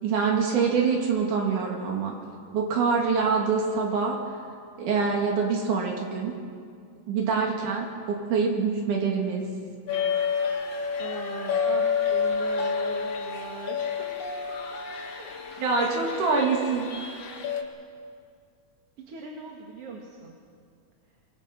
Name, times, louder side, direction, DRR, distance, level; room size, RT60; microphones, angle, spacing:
voice 1, 0.0-2.2 2.5-4.2 4.8-6.3 7.1-9.4 15.6-16.9, right 5 dB, 90° right, -1 dB, 3.7 m, -25 dB
sound 1, 9.9-17.6, left 5 dB, 60° left, 2.8 m, -29 dB
voice 2, 11.0-14.1 15.2-15.6 16.3-16.7 19.1-20.4, right 4 dB, 55° right, -1 dB, 2.7 m, -40 dB
25.0 x 24.0 x 6.1 m, 2.3 s
omnidirectional pair, 3.4 m